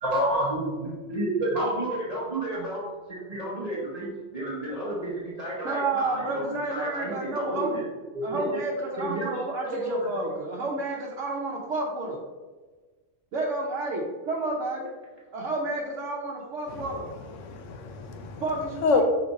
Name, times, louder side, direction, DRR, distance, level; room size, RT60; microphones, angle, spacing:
voice 1, 0.0-6.4 6.7-7.8 8.1-8.6 9.0-9.4 9.7-10.3, right 1 dB, 35° right, -7 dB, 0.9 m, -30 dB
voice 2, 5.6-7.8 8.2-12.2 13.3-14.9 15.3-17.1 18.4-19.0, right 2 dB, 75° right, -4 dB, 1.0 m, -30 dB
voice 3, 16.7-19.0, left 5 dB, 80° left, 5 dB, 1.0 m, -29 dB
5.1 x 2.5 x 4.0 m, 1.3 s
omnidirectional pair, 1.3 m